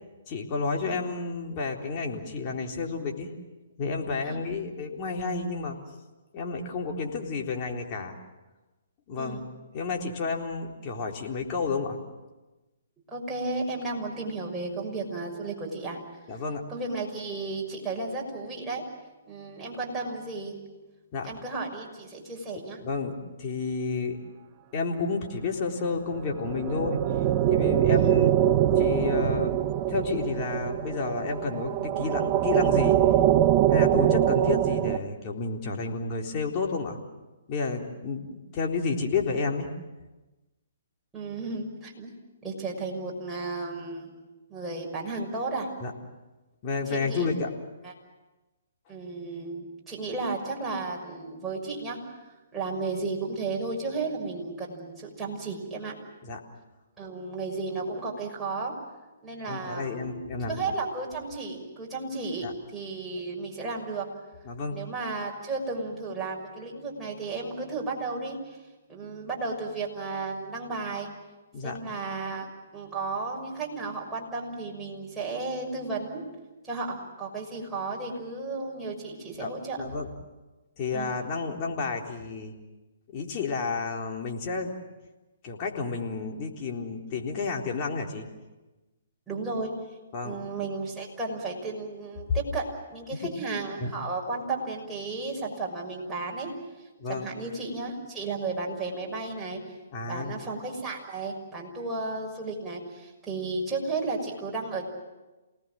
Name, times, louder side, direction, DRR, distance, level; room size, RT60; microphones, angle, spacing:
voice 1, 0.3-3.3 3.8-5.8 6.3-8.2 9.1-9.4 9.7-12.0 16.3-16.6 21.1-21.3 22.8-24.2 24.7-27.0 27.5-28.3 28.8-29.6 29.9-33.0 33.7-37.0 37.5-39.7 45.8-45.9 46.6-47.5 56.2-56.4 59.5-60.6 62.4-62.5 64.5-64.8 71.5-71.8 79.4-79.5 79.8-80.1 80.8-82.5 83.1-84.7 85.4-88.3 90.1-90.4 93.2-93.3 93.8-93.9 97.0-97.3 99.9-100.3, left 4 dB, 35° left, 1 dB, 3.8 m, -31 dB
voice 2, 13.1-16.0 16.7-18.8 19.3-20.6 21.2-22.8 27.9-28.1 41.1-44.1 44.5-45.7 46.9-47.3 47.8-47.9 48.9-52.0 52.5-55.9 57.0-58.7 59.2-62.5 62.7-64.1 64.7-68.6 68.9-71.1 71.6-72.5 72.7-76.2 76.6-79.8 80.9-81.1 89.3-89.7 90.2-96.5 97.1-99.6 100.1-104.8, right 3 dB, 10° right, -3 dB, 6.2 m, -33 dB
sound 1, 26.1-35.0, right 11 dB, 35° right, 0.9 m, -23 dB
28.5 x 19.0 x 7.7 m, 1.1 s
hypercardioid pair, 135°, 0 cm